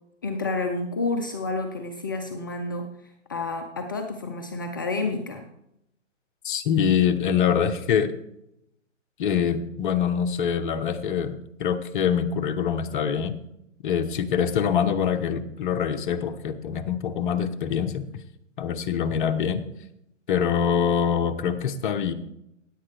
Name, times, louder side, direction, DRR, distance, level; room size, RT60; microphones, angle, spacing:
voice 1, 0.2-5.5, left 3 dB, 20° left, 5 dB, 0.4 m, -30 dB
voice 2, 6.4-8.1 9.2-13.3 13.8-18.1 18.6-19.6 20.3-22.1, left 8 dB, 40° left, 8 dB, 1.0 m, -24 dB
16.0 x 8.9 x 3.3 m, 0.80 s
hypercardioid pair, 135°, 37 cm